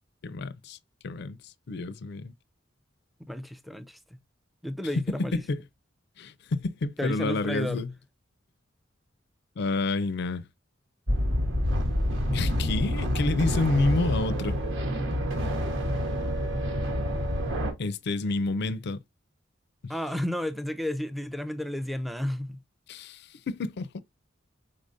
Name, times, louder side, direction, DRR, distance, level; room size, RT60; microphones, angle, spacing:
voice 1, 0.2-0.8 1.0-2.3 4.9-5.6 6.2-7.9 9.6-10.4 12.3-14.6 17.8-19.0 19.8-19.9 22.9-24.0, left 3 dB, 60° left, 0.4 m, -29 dB
voice 2, 3.3-4.0 4.6-5.4 7.0-7.8 19.9-22.6, left 1 dB, ahead, 0.5 m, -32 dB
sound 1, 11.1-17.7, equal, 80° right, 1.3 m, -27 dB
5.0 x 3.9 x 2.6 m
head